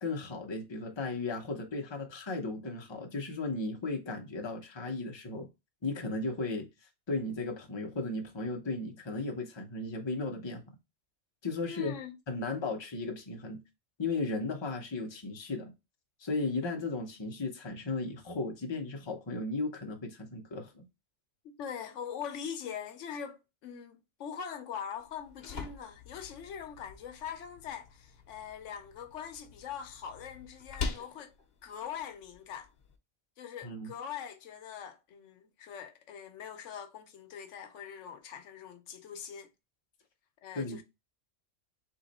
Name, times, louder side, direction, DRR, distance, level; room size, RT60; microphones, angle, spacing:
voice 1, 0.0-5.5 5.8-6.7 7.1-10.6 11.4-11.9 12.3-13.6 14.0-15.7 16.2-20.8 33.6-33.9 40.5-40.8, left 3 dB, 25° left, 0.8 m, -35 dB
voice 2, 11.6-12.2 21.4-31.3 31.6-32.7 33.4-39.5 40.4-40.8, left 8 dB, 80° left, 1.0 m, -42 dB
sound 1, 25.0-33.0, left 5 dB, 60° left, 1.1 m, -44 dB
3.6 x 3.1 x 4.0 m
omnidirectional pair, 1.2 m